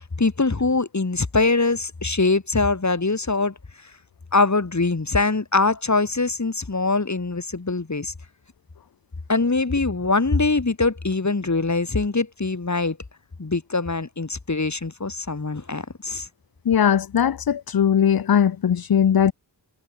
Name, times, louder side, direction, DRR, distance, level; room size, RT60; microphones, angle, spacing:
voice 1, 0.2-3.5 3.8-3.9 4.3-8.1 9.3-13.0 13.4-16.3, left 3 dB, 40° left, 4.0 m, -23 dB
voice 2, 16.7-19.3, left 8 dB, 55° left, 0.7 m, -19 dB
wide cardioid pair, 65°, 43 cm